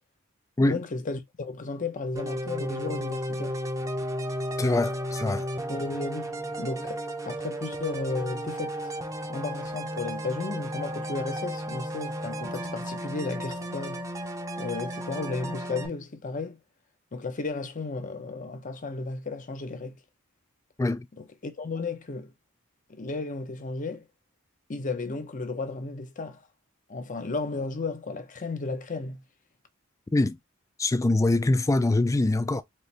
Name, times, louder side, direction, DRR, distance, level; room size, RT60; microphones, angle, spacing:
voice 1, 0.6-3.6 5.7-6.3 6.6-8.9 9.3-14.0 14.6-16.6 17.1-20.0 21.4-22.3 22.9-24.1 24.7-26.4 26.9-29.2, left 3 dB, 35° left, 0.7 m, -34 dB
sound 1, 2.2-15.9, equal, 15° right, 0.6 m, -34 dB
voice 2, 4.6-5.5 20.8-21.1 30.1-30.4 30.8-32.6, left 2 dB, 15° left, 0.3 m, -23 dB
4.2 x 2.6 x 3.2 m
head